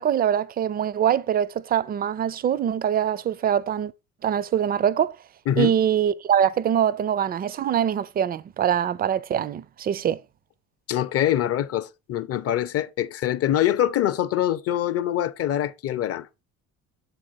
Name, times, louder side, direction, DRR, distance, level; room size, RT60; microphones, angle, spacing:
voice 1, 0.0-3.9 4.2-5.2 5.6-10.2, right 9 dB, 25° right, 0.4 m, -23 dB
voice 2, 10.9-16.3, left 11 dB, 35° left, 0.6 m, -24 dB
7.3 x 4.2 x 3.9 m
figure-of-eight pair, 55°, 41 cm